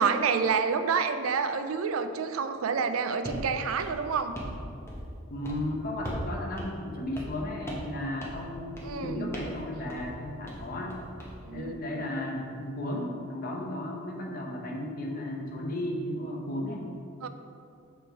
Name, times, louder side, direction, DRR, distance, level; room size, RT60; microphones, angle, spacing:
voice 1, 0.0-4.4 8.8-9.3 11.4-11.8 17.2-17.3, right 5 dB, 90° right, 9 dB, 0.4 m, -28 dB
sound 1, 3.2-3.5 3.8-4.6 4.9-5.2 5.4-5.6 6.0-6.3 6.6-6.7 7.1-7.4 7.7-7.9 8.2-8.5 8.8-9.0 9.3-9.6 9.9-10.1 10.5-11.3, equal, 15° left, 0.8 m, -38 dB
voice 2, 5.3-11.0 11.5-16.9, left 1 dB, 45° left, -1 dB, 0.9 m, -34 dB
7.0 x 3.4 x 4.4 m, 2.4 s
head